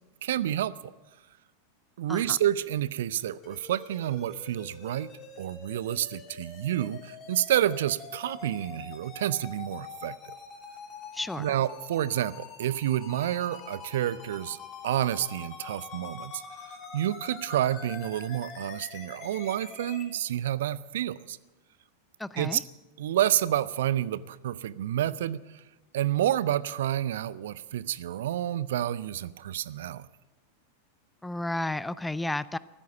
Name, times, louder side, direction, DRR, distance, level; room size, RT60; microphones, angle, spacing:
voice 1, 0.2-0.9 2.0-10.2 11.4-14.6 14.8-21.4 22.4-22.6 23.0-25.6 25.9-30.1, right 12 dB, 60° right, 19 dB, 0.5 m, -29 dB
sound 1, 3.4-20.0, left 5 dB, 30° left, 2.7 m, -45 dB
voice 2, 11.1-11.5 22.2-22.6 31.2-32.6, left 2 dB, 5° left, 18 dB, 0.4 m, -32 dB
14.0 x 14.0 x 6.9 m, 1.1 s
figure-of-eight pair, 90°, 0 cm